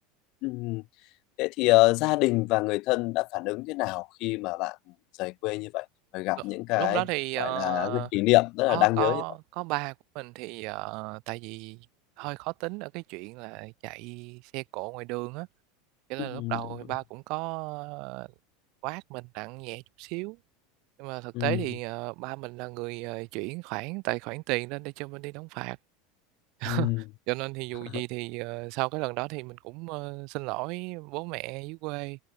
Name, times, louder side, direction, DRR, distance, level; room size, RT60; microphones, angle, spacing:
voice 1, 0.4-0.8 1.4-4.7 5.2-5.8 6.1-7.0 7.4-9.2 16.3-16.6 21.3-21.6 26.7-27.0, left 23 dB, 50° left, 1.0 m, -25 dB
voice 2, 6.8-8.1 8.7-11.8 12.2-15.5 16.1-18.3 18.8-20.4 21.0-25.8 26.6-32.2, right 27 dB, 50° right, 1.6 m, -34 dB
figure-of-eight pair, 80°, 0 cm